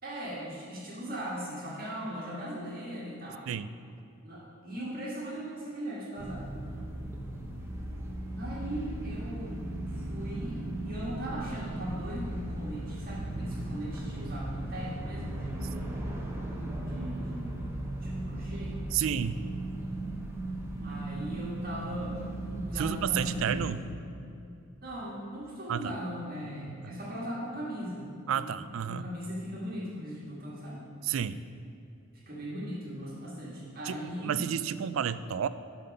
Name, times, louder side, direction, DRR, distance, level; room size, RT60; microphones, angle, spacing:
voice 1, 0.0-3.4 4.2-6.5 8.3-9.6 9.8-16.1 16.8-17.7 18.0-18.8 20.8-23.8 24.8-28.1 28.4-28.5 28.9-30.8 32.2-34.4, equal, 45° right, -5 dB, 1.6 m, -39 dB
sound 1, 6.2-23.7, right 1 dB, 10° right, 0.9 m, -37 dB
voice 2, 18.9-19.4 22.8-23.8 25.7-25.9 26.8-26.9 28.3-29.0 31.0-31.4 33.9-35.5, right 8 dB, 70° right, 14 dB, 0.3 m, -31 dB
12.0 x 4.1 x 5.3 m, 2.6 s
head